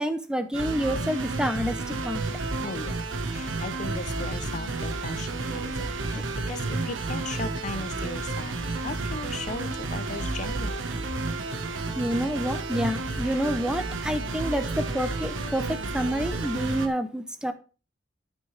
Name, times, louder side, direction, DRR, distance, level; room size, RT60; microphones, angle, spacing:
voice 1, 0.0-2.2 6.1-6.3 12.0-17.5, equal, 5° right, 9 dB, 0.6 m, -28 dB
sound 1, 0.5-16.9, right 3 dB, 85° right, 1.3 m, -31 dB
voice 2, 2.6-10.9, left 3 dB, 40° left, 12 dB, 0.6 m, -38 dB
13.0 x 5.2 x 3.3 m, 0.35 s
head